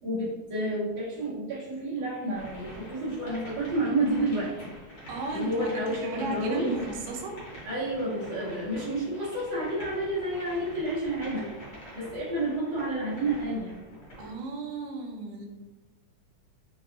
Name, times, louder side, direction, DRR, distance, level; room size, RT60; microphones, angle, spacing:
voice 1, 0.0-4.7 5.3-6.7 7.6-11.5 11.9-13.8, right 1 dB, 60° right, -10 dB, 1.1 m, -30 dB
sound 1, 2.3-14.4, equal, 55° left, 1.2 m, -45 dB
voice 2, 5.1-7.4 14.2-15.5, right 3 dB, 90° right, 1 dB, 2.3 m, -34 dB
5.3 x 2.6 x 2.6 m, 1.1 s
omnidirectional pair, 3.7 m